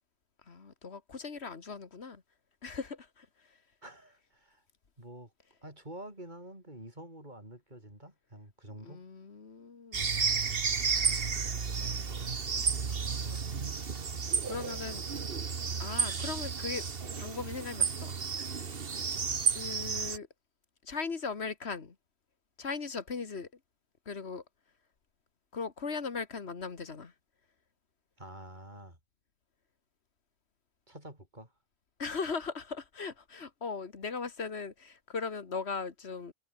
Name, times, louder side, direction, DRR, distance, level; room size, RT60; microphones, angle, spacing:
voice 1, 0.5-2.2 2.6-3.6 8.8-10.2 11.3-12.3 13.2-13.4 14.5-15.3 15.8-16.9 17.2-18.2 18.4-18.6 19.5-20.3 20.8-22.0 22.6-23.5 24.1-24.4 25.5-27.1 32.0-36.3, left 5 dB, 75° left, 2.0 m, -39 dB
voice 2, 3.8-4.6 5.0-5.3 5.6-9.0 10.6-11.6 12.9-13.7 18.9-19.1 28.2-29.0 30.9-31.5, right 1 dB, 45° right, 7.5 m, -49 dB
sound 1, 9.9-20.2, right 5 dB, 60° right, 1.6 m, -32 dB
omnidirectional pair, 1.1 m